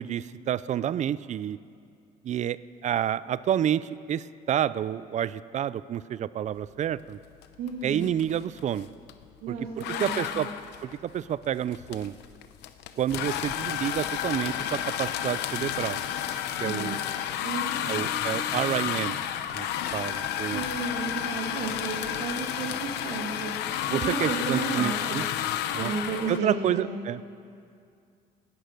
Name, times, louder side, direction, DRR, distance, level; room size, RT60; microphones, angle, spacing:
voice 1, 0.0-1.6 2.2-7.2 7.8-8.9 9.5-10.5 10.8-12.2 13.0-16.0 16.6-17.0 17.9-19.2 19.5-19.7 19.9-20.6 23.9-25.2 25.7-25.9 26.3-27.2, right 10 dB, 45° right, 18 dB, 0.4 m, -29 dB
sound 1, 7.4-7.7 8.0-9.2 9.8-26.4, left 10 dB, 85° left, 0.8 m, -31 dB
voice 2, 7.6-8.1 9.4-10.5 16.6-17.0 17.4-18.0 20.5-23.5 23.9-25.2 25.8-27.0, right 4 dB, 85° right, -2 dB, 1.9 m, -33 dB
17.0 x 11.5 x 6.5 m, 2.4 s
cardioid pair, 110°, 17 cm